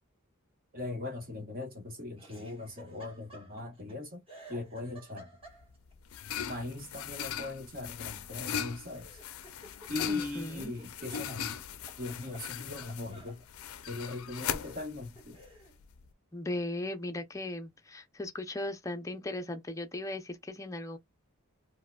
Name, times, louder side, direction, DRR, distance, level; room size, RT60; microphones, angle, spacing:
voice 1, 0.7-4.2 4.5-5.3 6.4-9.1 9.9-11.6 12.0-13.4 13.9-15.4, left 2 dB, 40° right, 1.2 m, -39 dB
Laughter, 2.2-3.9 4.3-5.9 8.3-11.4 11.7-13.4 14.0-14.1 14.4-15.8, right 1 dB, 25° right, 1.4 m, -53 dB
sound 1, 5.5-16.1, left 8 dB, 65° left, 0.4 m, -40 dB
voice 2, 10.1-10.7 16.3-21.0, left 1 dB, 15° left, 0.5 m, -37 dB
4.7 x 2.1 x 2.2 m
head